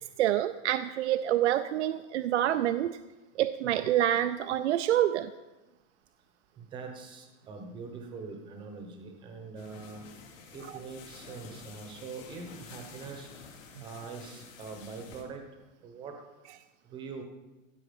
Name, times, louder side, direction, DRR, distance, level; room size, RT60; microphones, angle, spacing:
voice 1, 0.2-3.0 3.4-5.3, right 12 dB, 60° right, 10 dB, 0.5 m, -27 dB
voice 2, 6.6-10.1 10.5-13.3 13.8-15.4 15.8-16.2 16.8-17.2, right 4 dB, 10° right, 4 dB, 0.9 m, -43 dB
sound 1, 9.6-15.2, left 5 dB, 75° left, 3.2 m, -50 dB
15.5 x 7.1 x 5.2 m, 1.1 s
supercardioid pair, 175°, 40 cm